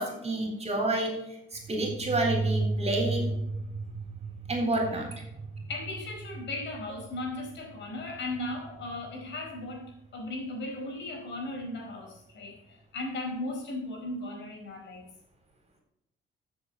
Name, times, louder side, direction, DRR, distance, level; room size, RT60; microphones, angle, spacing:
voice 1, 0.0-3.3 4.5-5.2, right 2 dB, 30° right, 2 dB, 4.0 m, -29 dB
sound 1, 1.5-9.9, right 3 dB, 50° right, 0.9 m, -35 dB
voice 2, 5.4-15.1, left 2 dB, 65° left, 1 dB, 4.6 m, -37 dB
13.5 x 7.5 x 4.0 m, 0.85 s
cardioid pair, 90°, 20 cm